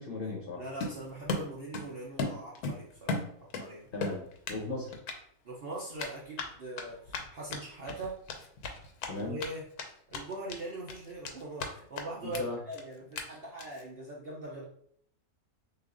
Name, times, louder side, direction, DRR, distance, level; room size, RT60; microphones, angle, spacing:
voice 1, 0.0-0.6 3.9-4.2 4.5-4.9 9.1-9.4 12.2-12.6, left 2 dB, 45° left, 0 dB, 0.8 m, -36 dB
voice 2, 0.5-3.2 3.6-3.9 5.4-8.2 9.2-9.6 10.1-14.6, right 2 dB, 55° right, -3 dB, 0.7 m, -41 dB
Run, 0.8-1.9 2.2-3.7 4.0-4.6 4.9-5.2 6.0-9.5 9.8-9.9 10.1-10.6 10.9-11.7 12.0-12.1 12.3-12.4 12.7-12.8 13.2-13.3 13.6-13.8, left 3 dB, 90° left, 1.2 m, -36 dB
6.6 x 2.5 x 2.5 m, 0.65 s
omnidirectional pair, 1.6 m